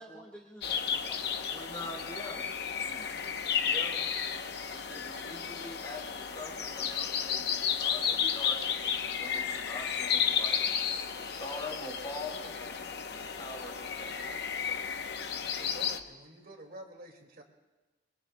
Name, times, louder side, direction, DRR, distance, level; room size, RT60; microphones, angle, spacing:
voice 1, 0.0-1.6 2.9-3.3, equal, 10° left, -3 dB, 1.5 m, -51 dB
sound 1, 0.6-16.0, left 7 dB, 65° left, 0.8 m, -33 dB
voice 2, 1.5-2.4 3.6-4.0 4.7-10.6 11.2-14.8, left 2 dB, 25° left, 0 dB, 3.5 m, -44 dB
voice 3, 15.6-17.4, right 1 dB, 55° right, 2 dB, 2.2 m, -49 dB
27.5 x 22.5 x 2.2 m, 1.2 s
head